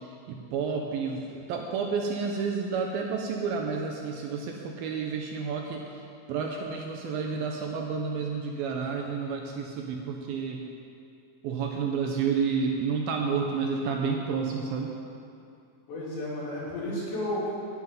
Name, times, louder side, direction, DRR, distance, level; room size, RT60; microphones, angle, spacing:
voice 1, 0.0-6.0 6.3-10.6 11.4-14.9, right 5 dB, 75° right, 1 dB, 2.3 m, -30 dB
voice 2, 15.9-17.5, left 1 dB, 80° left, -7 dB, 5.5 m, -32 dB
11.0 x 7.9 x 9.4 m, 2.5 s
omnidirectional pair, 5.0 m